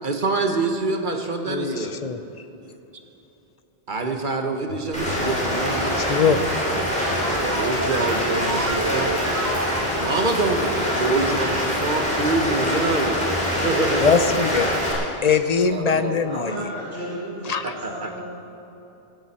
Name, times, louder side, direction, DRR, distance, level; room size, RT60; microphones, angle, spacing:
voice 1, 0.0-1.9 2.6-2.8 3.9-6.0 7.5-9.2 10.0-13.2 13.6-14.1 15.7-16.2 17.8-18.1, right 3 dB, 50° right, 4 dB, 1.3 m, -25 dB
voice 2, 1.5-2.2 6.0-6.5 14.0-14.7 15.2-16.7 17.4-17.7, left 5 dB, 45° left, 10 dB, 0.7 m, -21 dB
sound 1, 4.0-4.3 4.6-7.7, left 1 dB, 80° left, 1.6 m, -40 dB
Rain, 4.9-14.9, equal, 5° left, 4.2 m, -24 dB
sound 2, 6.4-10.6, right 4 dB, 30° right, 0.3 m, -31 dB
voice 3, 16.2-18.2, equal, 75° right, -9 dB, 3.5 m, -34 dB
16.0 x 15.5 x 4.3 m, 3.0 s
omnidirectional pair, 1.0 m